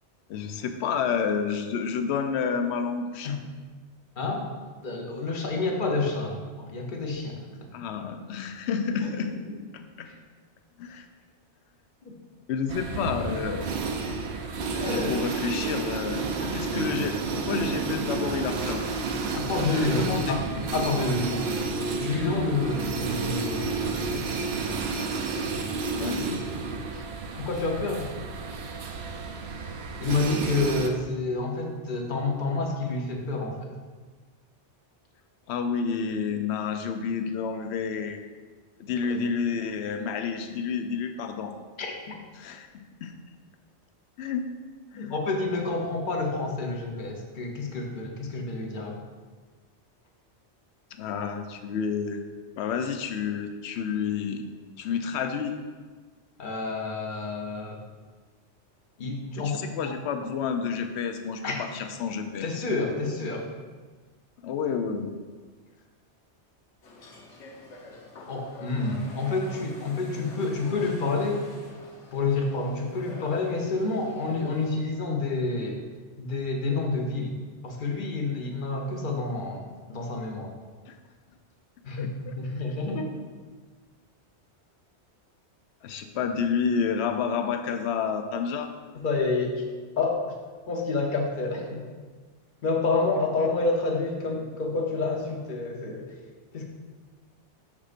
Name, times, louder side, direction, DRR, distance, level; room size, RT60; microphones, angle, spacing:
voice 1, 0.3-3.4 7.7-9.3 9.7-10.1 10.8-11.1 12.5-13.7 14.8-16.2 16.5-18.8 19.7-20.4 25.9-26.4 35.5-38.2 38.8-41.6 42.3-43.1 44.2-44.4 44.9-45.1 51.0-52.2 52.6-54.4 54.8-55.6 59.4-62.6 64.4-65.2 80.9-81.0 82.0-82.3 85.8-88.7 93.4-93.5, left 6 dB, 70° left, 7 dB, 0.8 m, -30 dB
voice 2, 4.2-4.5 4.8-7.6 9.0-9.1 9.5-9.6 10.1-10.2 12.1-12.2 14.7-15.2 16.4-16.6 19.3-21.4 21.9-23.7 24.1-24.3 26.9-27.0 27.4-28.1 30.0-33.7 39.1-39.2 41.8-42.2 45.0-49.0 56.4-57.8 59.0-59.6 59.9-60.0 61.4-61.6 62.4-63.5 68.3-71.4 72.1-75.8 76.2-77.3 77.6-80.5 81.8-83.1 89.0-89.6 90.0-90.3 90.7-91.9 92.6-96.1 96.5-96.6, left 3 dB, 50° left, 1 dB, 1.0 m, -29 dB
sound 1, 12.7-30.9, right 4 dB, 70° right, 0.8 m, -31 dB
Singing, 21.3-26.4, left 1 dB, 20° right, 0.8 m, -48 dB
sound 2, 66.8-74.7, left 2 dB, 90° left, 1.2 m, -47 dB
7.2 x 6.5 x 2.5 m, 1.4 s
omnidirectional pair, 1.2 m